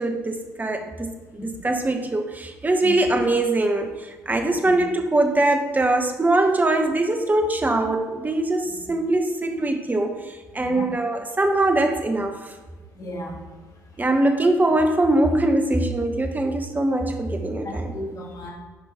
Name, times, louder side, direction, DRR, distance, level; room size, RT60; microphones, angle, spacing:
voice 1, 0.0-12.5 14.0-18.0, right 2 dB, 20° right, 5 dB, 1.2 m, -22 dB
voice 2, 12.9-13.4 17.6-18.5, left 1 dB, 40° left, -1 dB, 2.1 m, -34 dB
9.4 x 5.2 x 4.3 m, 1.2 s
figure-of-eight pair, 50°, 9 cm